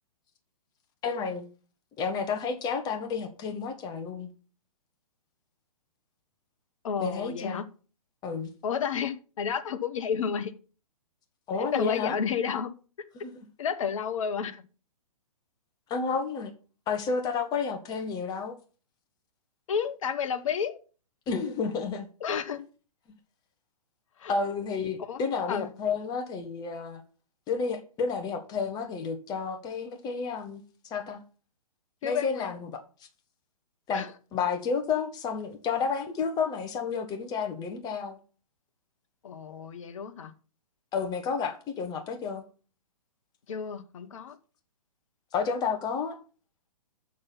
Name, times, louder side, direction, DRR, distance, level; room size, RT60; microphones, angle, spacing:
voice 1, 1.0-1.5 2.0-4.3 7.0-7.6 8.2-8.5 11.5-12.2 13.1-13.5 15.9-16.5 16.9-18.6 21.3-22.1 24.3-27.0 27.5-31.2 32.0-32.8 33.9-38.2 40.9-42.4 45.3-46.2, left 5 dB, 20° left, 1.2 m, -31 dB
voice 2, 6.8-7.6 8.6-10.5 11.6-12.7 13.6-14.6 19.7-20.8 22.2-22.6 24.2-24.3 25.0-25.2 25.5-25.7 32.0-32.5 33.9-34.1 39.2-40.3 43.5-44.4, left 7 dB, 55° left, 1.2 m, -31 dB
6.9 x 6.5 x 5.8 m
hypercardioid pair, 125°, 19 cm